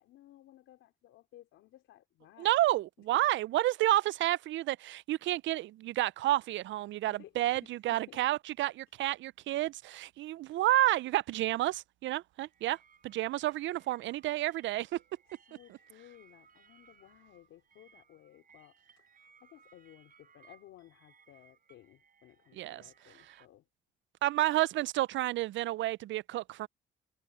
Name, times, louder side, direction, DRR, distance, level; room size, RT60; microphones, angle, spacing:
voice 1, 0.0-2.6 3.0-3.3 7.1-8.2 15.5-23.7, left 14 dB, 90° left, 3.8 m, -58 dB
voice 2, 2.4-12.8 13.0-15.0 22.6-22.8 24.2-26.7, right 15 dB, 70° right, 0.4 m, -30 dB
sound 1, 12.4-23.5, right 6 dB, 45° right, 6.8 m, -64 dB
cardioid pair, 90°, 20 cm